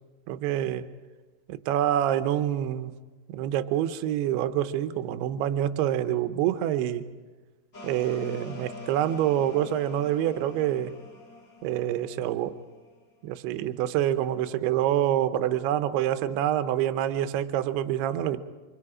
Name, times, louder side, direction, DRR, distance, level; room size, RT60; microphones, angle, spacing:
voice 1, 0.3-0.9 1.5-2.9 3.3-7.1 7.8-10.9 11.6-12.6 13.2-18.4, right 11 dB, 75° right, 11 dB, 2.7 m, -26 dB
sound 1, 7.7-13.2, left 2 dB, 85° left, 0.6 m, -45 dB
29.5 x 25.5 x 4.9 m, 1.3 s
omnidirectional pair, 5.0 m